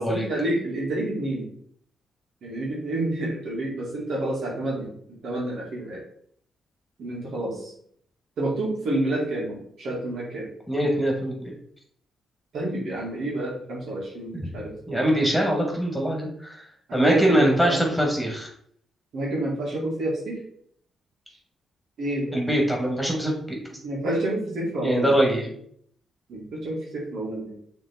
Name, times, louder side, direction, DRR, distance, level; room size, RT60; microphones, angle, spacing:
voice 1, 0.0-1.5 2.4-6.0 7.0-7.7 8.4-10.5 12.5-15.1 16.9-17.8 19.1-20.4 22.0-22.4 23.8-25.1 26.3-27.6, right 1 dB, 65° right, -3 dB, 2.3 m, -29 dB
voice 2, 10.7-11.6 14.9-16.6 16.9-18.5 22.3-23.6 24.8-25.5, right 1 dB, ahead, 0 dB, 2.6 m, -23 dB
6.2 x 3.7 x 4.4 m, 0.64 s
hypercardioid pair, 40°, 0 cm